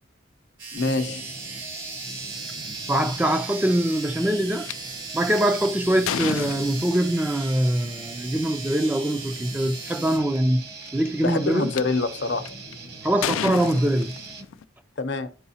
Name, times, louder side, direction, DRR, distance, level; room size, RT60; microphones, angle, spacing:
sound 1, 0.6-10.2, right 4 dB, 85° right, 3.1 m, -37 dB
voice 1, 0.7-1.3 11.2-12.5 15.0-15.3, left 3 dB, 60° left, 0.8 m, -25 dB
sound 2, 0.8-14.5, right 3 dB, 50° right, 1.2 m, -41 dB
voice 2, 2.9-4.7 5.1-10.7 10.9-11.7 13.0-14.2, right 1 dB, 10° right, 0.4 m, -23 dB
sound 3, 4.7-4.8 5.4-7.2 8.5-8.7 9.3-9.4 9.6-10.1 10.8-11.8 12.4-12.7 13.2-14.6, left 8 dB, 90° left, 0.4 m, -31 dB
13.0 x 4.7 x 2.8 m
head